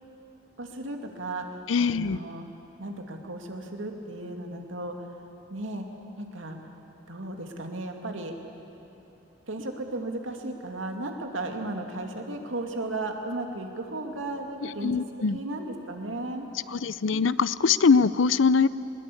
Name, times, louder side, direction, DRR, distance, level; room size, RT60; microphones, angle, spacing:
voice 1, 0.6-2.4 2.8-5.0 5.5-5.8 6.2-6.6 7.1-8.3 9.5-14.9 15.3-16.5, right 2 dB, 90° right, 3 dB, 2.4 m, -35 dB
voice 2, 1.7-2.2 14.6-15.4 16.7-18.7, left 5 dB, 80° left, 17 dB, 0.6 m, -22 dB
21.5 x 20.5 x 8.6 m, 2.9 s
head